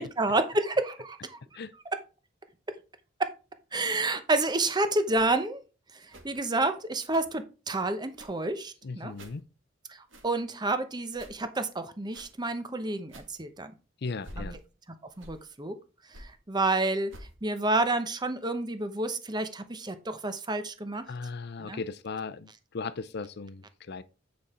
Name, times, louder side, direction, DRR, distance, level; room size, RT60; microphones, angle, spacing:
voice 1, 0.0-1.4 3.7-5.6 6.2-9.1 9.9-13.7 14.4-14.6 15.2-15.7 16.2-17.1 17.4-21.0 21.6-21.8, right 2 dB, 20° right, 0.8 m, -29 dB
sound 1, 5.1-5.3 6.1-6.4 7.1-7.3 8.1-8.5 9.1-9.4 10.1-10.3 11.1-11.4 12.1-12.3 13.1-13.3 14.1-14.7 15.1-15.5 16.1-16.3 17.1-17.3, equal, 65° right, 1.9 m, -47 dB
voice 2, 8.8-9.4 14.0-14.6 21.1-24.0, left 4 dB, 55° left, 0.6 m, -37 dB
8.7 x 5.2 x 4.3 m
head